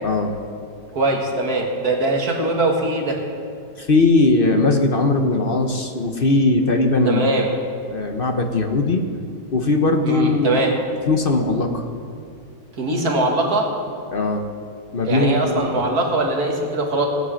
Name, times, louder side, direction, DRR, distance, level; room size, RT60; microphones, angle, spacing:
voice 1, 0.0-0.4 3.8-7.4 7.9-9.0 9.5-10.6 11.1-11.9 14.1-14.4 14.9-15.8, left 3 dB, 40° left, 5 dB, 0.8 m, -19 dB
voice 2, 0.9-3.2 7.1-7.4 10.1-10.7 12.8-13.7 15.1-17.1, right 2 dB, 55° right, 1 dB, 2.1 m, -21 dB
17.5 x 9.4 x 6.4 m, 2.4 s
omnidirectional pair, 2.0 m